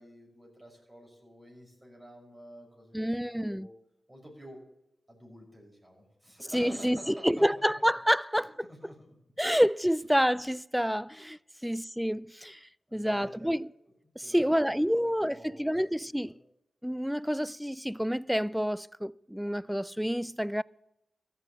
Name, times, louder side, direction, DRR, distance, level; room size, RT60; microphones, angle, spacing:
voice 1, 0.0-3.7 4.1-4.6 5.1-7.5 8.4-9.1 11.5-11.8 12.9-13.5 14.0-15.9 16.2-16.4, equal, 20° right, 5.9 m, -49 dB
voice 2, 2.9-3.7 6.5-8.5 9.4-13.7 14.2-16.3 16.8-20.6, equal, ahead, 0.4 m, -28 dB
14.0 x 5.9 x 9.7 m
cardioid pair, 45°, 0 cm